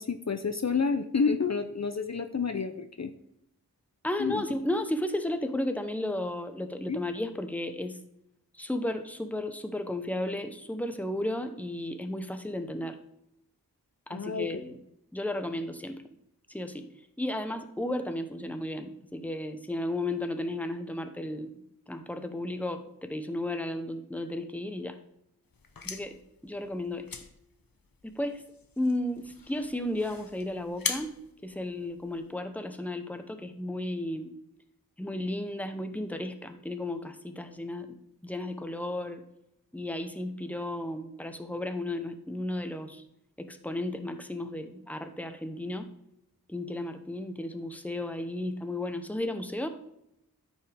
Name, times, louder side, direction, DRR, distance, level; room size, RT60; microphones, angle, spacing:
voice 1, 0.0-3.1 4.2-4.4 6.9-7.0 14.1-14.5, left 5 dB, 50° left, 8 dB, 0.6 m, -29 dB
voice 2, 4.0-8.0 8.5-13.0 14.1-14.8 15.1-16.0 16.5-16.9 17.2-25.0 25.8-26.2 26.4-27.2 28.0-28.4 28.8-31.1 31.4-34.3 35.0-38.0 38.2-39.2 39.7-43.0 43.4-45.9 46.5-49.7, left 1 dB, 5° left, 8 dB, 0.9 m, -34 dB
sound 1, 25.5-32.3, left 4 dB, 70° left, 0.9 m, -41 dB
13.0 x 5.4 x 3.5 m, 0.79 s
wide cardioid pair, 45°, 36 cm